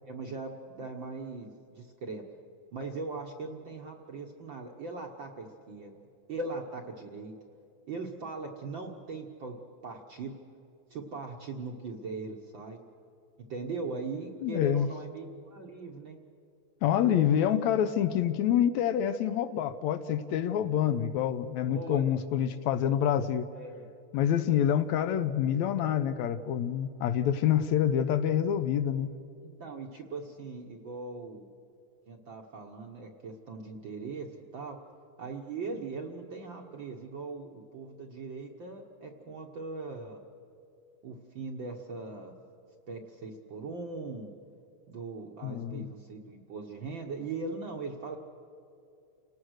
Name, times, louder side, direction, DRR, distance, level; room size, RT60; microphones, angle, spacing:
voice 1, 0.1-2.2 2.7-6.0 6.3-7.3 7.9-9.6 9.8-10.4 10.9-12.8 13.5-16.2 17.1-17.5 20.7-20.9 21.7-22.0 23.5-23.9 29.4-31.5 32.1-34.3 34.5-34.8 35.2-40.2 41.0-42.3 42.9-44.3 44.9-48.2, right 3 dB, 55° right, 2 dB, 1.4 m, -40 dB
voice 2, 14.4-14.9 16.8-23.5 24.1-29.1 45.4-45.9, left 9 dB, 75° left, 10 dB, 1.9 m, -27 dB
29.5 x 18.5 x 6.4 m, 2.7 s
omnidirectional pair, 3.5 m